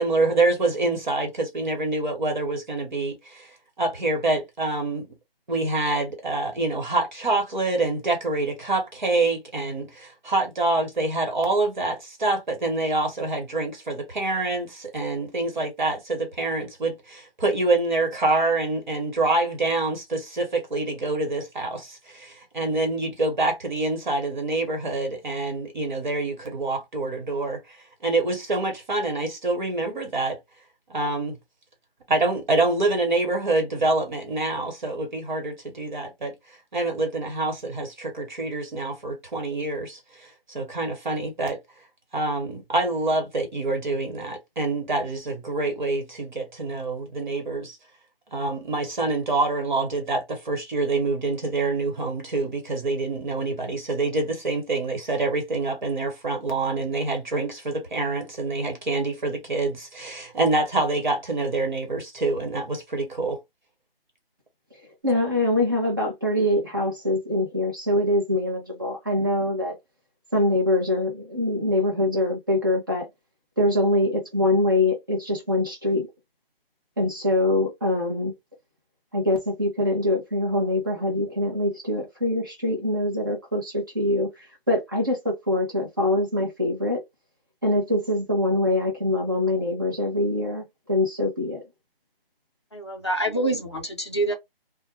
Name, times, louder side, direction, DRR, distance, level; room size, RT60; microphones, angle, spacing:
voice 1, 0.0-3.5 3.8-5.1 5.5-27.6 28.0-30.4 30.9-31.4 32.1-36.3 36.7-41.6 42.1-47.8 48.3-63.4, right 2 dB, 50° right, 1.3 m, -26 dB
voice 2, 65.0-69.8 70.3-73.0 73.6-76.1 77.0-78.3 79.1-84.3 84.7-87.0 87.6-91.6, left 1 dB, 20° right, 0.8 m, -24 dB
voice 3, 92.7-94.3, right 1 dB, 30° left, 0.5 m, -26 dB
2.5 x 2.2 x 3.0 m
figure-of-eight pair, 175°, 30 cm